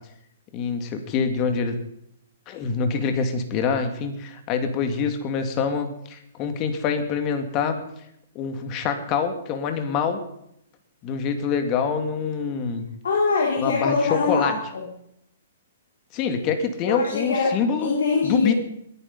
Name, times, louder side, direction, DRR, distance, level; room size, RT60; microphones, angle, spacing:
voice 1, 0.5-1.8 2.5-7.8 8.3-10.2 11.0-12.8 13.6-14.5 16.1-17.9 18.2-18.5, left 6 dB, 30° left, 7 dB, 2.3 m, -25 dB
voice 2, 13.0-14.9 16.9-17.6 17.8-18.5, left 4 dB, 75° left, -1 dB, 3.4 m, -23 dB
21.5 x 9.5 x 5.5 m, 0.75 s
hypercardioid pair, 145°, 0 cm